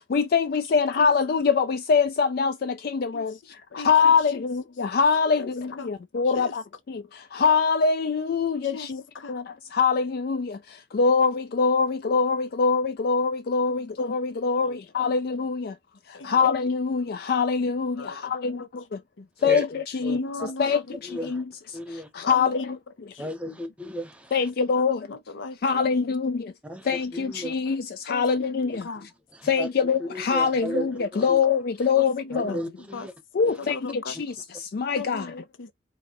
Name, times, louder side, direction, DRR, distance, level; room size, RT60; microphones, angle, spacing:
voice 1, 0.0-9.0 9.3-15.8 16.1-19.0 19.4-20.2 20.6-21.4 21.9-22.8 23.0-23.1 24.3-25.1 25.6-26.5 26.8-28.9 29.4-32.6 33.3-35.3, left 5 dB, 50° left, 0.3 m, -24 dB
voice 2, 3.7-4.1 5.3-5.9 6.3-6.5 8.6-9.4 13.7-13.8 14.5-15.1 16.1-16.4 17.9-18.7 19.2-19.3 20.1-21.3 22.2-22.7 23.1-23.6 24.7-26.1 28.1-29.1 31.1-31.3 31.9-32.6 32.9-33.1 33.6-34.1 35.0-35.7, left 3 dB, 80° left, 0.7 m, -39 dB
voice 3, 20.0-20.5 21.0-21.4 21.7-22.1 23.2-24.4 26.6-27.7 29.4-29.7 30.0-31.4 32.3-33.1 33.6-33.7 34.1-34.2, equal, 5° right, 0.8 m, -34 dB
4.7 x 2.7 x 3.0 m
head